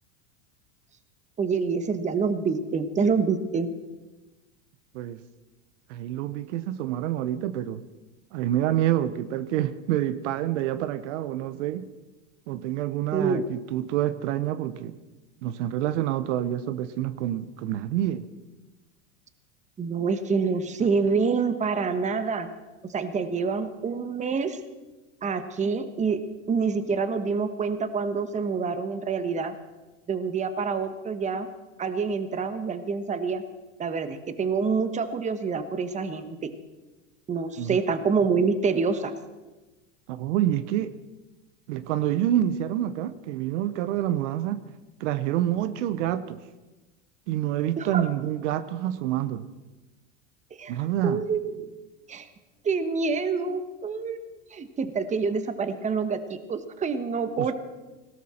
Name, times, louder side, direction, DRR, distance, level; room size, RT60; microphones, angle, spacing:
voice 1, 1.4-3.7 13.1-13.4 19.8-22.5 22.8-24.6 25.2-29.5 30.1-31.5 31.8-33.4 33.8-36.5 37.3-39.1 47.8-48.1 50.6-50.8 51.0-51.5 52.1-52.3 52.6-54.2 54.5-57.5, right 5 dB, 20° right, 10 dB, 1.2 m, -27 dB
voice 2, 5.9-7.8 8.3-11.9 12.5-15.0 15.4-18.2 37.6-37.8 40.1-41.0 41.7-44.6 45.0-46.4 47.3-49.5 50.7-51.2 57.4-57.5, right 12 dB, 70° right, 14 dB, 0.9 m, -27 dB
19.0 x 17.0 x 4.4 m, 1.1 s
supercardioid pair, 130°, 38 cm